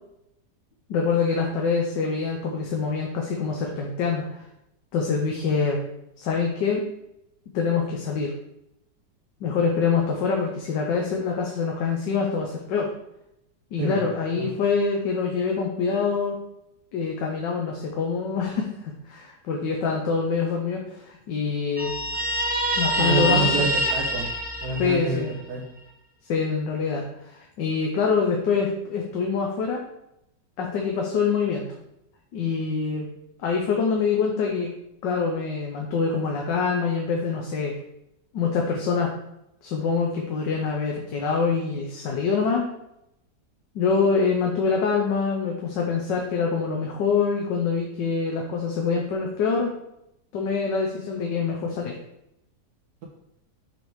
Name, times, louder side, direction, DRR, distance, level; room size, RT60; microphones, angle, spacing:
voice 1, 0.9-4.4 4.9-5.8 6.2-6.8 7.5-8.3 9.4-12.9 13.7-16.4 16.9-18.7 19.1-21.9 22.8-23.7 24.8-25.3 26.3-29.8 30.6-31.7 32.3-33.1 33.4-34.7 35.0-37.7 38.3-39.1 39.6-42.7 43.7-49.7 50.3-51.9, left 5 dB, 85° left, 0 dB, 1.5 m, -25 dB
Guitar, 21.8-25.3, equal, 10° right, 0.4 m, -25 dB
voice 2, 22.9-24.3 24.6-25.2 25.5-25.6, right 4 dB, 65° right, -3 dB, 1.6 m, -27 dB
6.6 x 3.5 x 4.6 m, 0.82 s
omnidirectional pair, 1.9 m